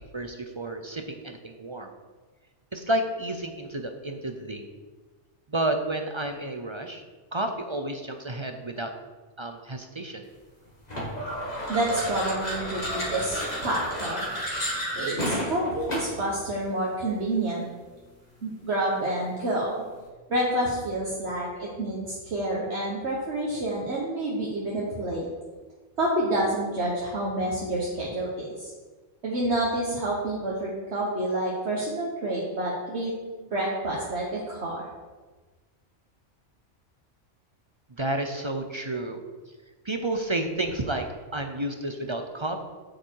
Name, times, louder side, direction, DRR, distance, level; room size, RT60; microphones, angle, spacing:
voice 1, 0.0-1.9 2.7-4.7 5.5-7.0 7.3-8.9 9.4-10.2 37.9-39.2 39.8-42.6, right 1 dB, 30° right, 5 dB, 0.6 m, -31 dB
sound 1, 10.9-16.3, equal, 35° left, 1.9 m, -31 dB
voice 2, 11.7-14.3 15.0-17.6 18.4-19.7 20.3-25.3 26.0-28.7 29.2-33.1 33.4-34.9, right 1 dB, 60° right, -4 dB, 1.7 m, -28 dB
8.8 x 7.4 x 4.7 m, 1.3 s
omnidirectional pair, 1.3 m